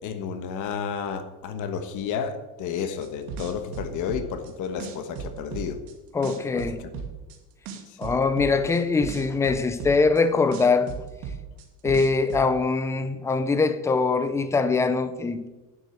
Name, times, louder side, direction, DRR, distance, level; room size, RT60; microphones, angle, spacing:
voice 1, 0.0-5.8 6.5-7.0 7.9-8.2, left 7 dB, 45° left, 1.4 m, -32 dB
sound 1, 3.0-4.5 4.8-5.9 6.2-7.4 7.7-10.2 10.5-12.4, right 6 dB, 60° right, 2.2 m, -35 dB
voice 2, 6.1-6.8 8.0-10.9 11.8-15.5, left 4 dB, 10° left, 0.4 m, -22 dB
11.0 x 7.8 x 7.8 m
cardioid pair, 175°, 40 cm